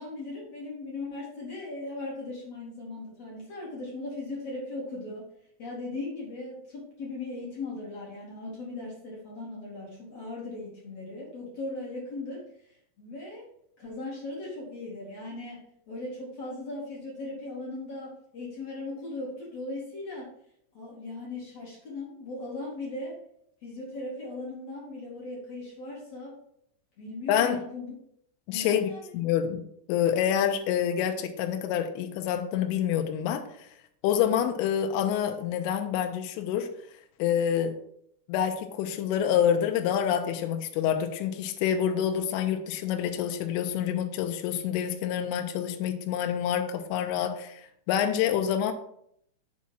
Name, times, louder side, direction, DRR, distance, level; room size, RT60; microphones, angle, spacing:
voice 1, 0.0-5.3 5.6-12.4 13.0-13.4 13.8-20.3 20.7-23.1 23.6-26.4 27.0-27.9 28.5-29.0, left 2 dB, 40° left, -6 dB, 2.7 m, -38 dB
voice 2, 27.3-27.6 28.5-33.7 34.0-36.7 37.2-37.8 38.3-48.7, left 9 dB, 85° left, 6 dB, 3.2 m, -27 dB
7.3 x 4.1 x 6.1 m, 0.71 s
omnidirectional pair, 5.8 m